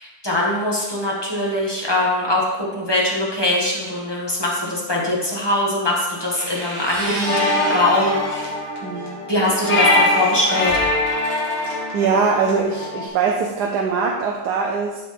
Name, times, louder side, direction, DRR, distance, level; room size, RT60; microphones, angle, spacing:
voice 1, 0.0-8.5 9.3-10.8, left 1 dB, 15° left, -4 dB, 1.6 m, -22 dB
sound 1, 6.2-8.5 8.9-11.7, right 1 dB, 30° right, 1.0 m, -34 dB
sound 2, 7.0-13.1, left 2 dB, 55° left, 2.0 m, -22 dB
voice 2, 8.8-9.2 11.4-15.0, right 5 dB, 90° right, 0 dB, 1.3 m, -22 dB
12.0 x 4.2 x 3.4 m, 1.1 s
omnidirectional pair, 1.7 m